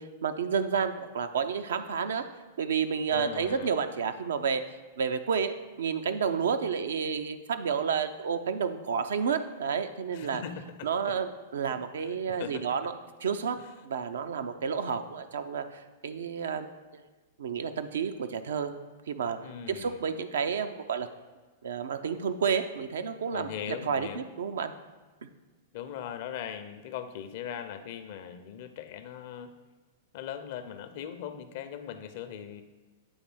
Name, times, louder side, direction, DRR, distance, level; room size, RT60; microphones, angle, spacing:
voice 1, 0.0-2.2 2.6-4.6 5.0-10.4 10.8-12.9 13.2-13.6 13.8-17.0 17.4-18.7 19.1-21.1 21.6-24.7, right 6 dB, 75° right, 9 dB, 0.5 m, -30 dB
voice 2, 3.1-3.8 10.1-10.9 11.7-12.6 13.6-13.7 19.4-20.1 23.3-24.3 25.7-29.5 30.1-32.6, left 9 dB, 60° left, 9 dB, 0.6 m, -40 dB
8.0 x 3.3 x 6.2 m, 1.3 s
hypercardioid pair, 105°, 0 cm